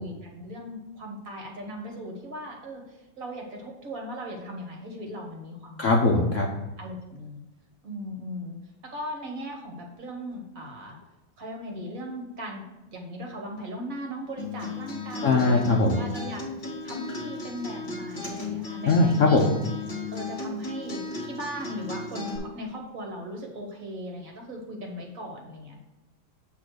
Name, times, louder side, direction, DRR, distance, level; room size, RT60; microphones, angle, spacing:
voice 1, 0.0-5.9 6.8-7.4 7.8-8.6 8.9-11.0 11.4-19.5 20.1-25.8, equal, 50° right, 0 dB, 1.5 m, -38 dB
voice 2, 5.8-6.5 15.2-16.0 18.9-19.5, left 3 dB, 65° left, 0 dB, 0.7 m, -20 dB
Acoustic guitar, 14.4-22.4, left 4 dB, 30° left, 1.8 m, -35 dB
8.4 x 3.2 x 6.3 m, 1.1 s
omnidirectional pair, 2.1 m